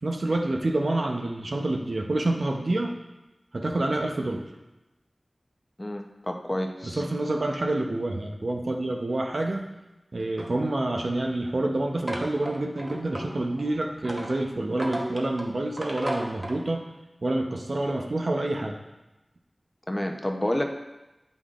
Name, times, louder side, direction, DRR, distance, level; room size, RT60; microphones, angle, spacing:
voice 1, 0.0-2.9 3.5-4.4 6.8-9.7 10.1-16.8 17.2-18.8, right 2 dB, 70° right, 2 dB, 0.7 m, -27 dB
voice 2, 5.8-7.0 19.9-20.7, left 1 dB, 25° left, 3 dB, 0.7 m, -29 dB
sound 1, 10.4-16.6, right 1 dB, 40° right, 1.0 m, -37 dB
8.1 x 5.3 x 2.5 m, 1.0 s
wide cardioid pair, 40°, 0 cm